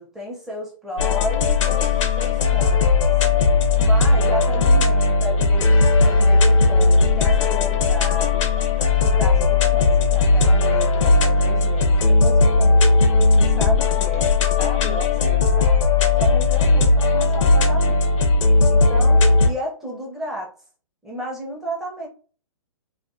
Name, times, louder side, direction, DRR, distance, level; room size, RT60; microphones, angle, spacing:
voice 1, 0.0-3.1 3.8-5.7 6.0-8.7 9.0-13.1 13.3-15.8 16.2-18.1 18.7-20.5 21.0-22.1, equal, ahead, -4 dB, 0.6 m, -33 dB
sound 1, 1.0-19.5, left 3 dB, 60° left, 0.5 m, -17 dB
2.5 x 2.4 x 2.3 m, 0.39 s
hypercardioid pair, 140°, 18 cm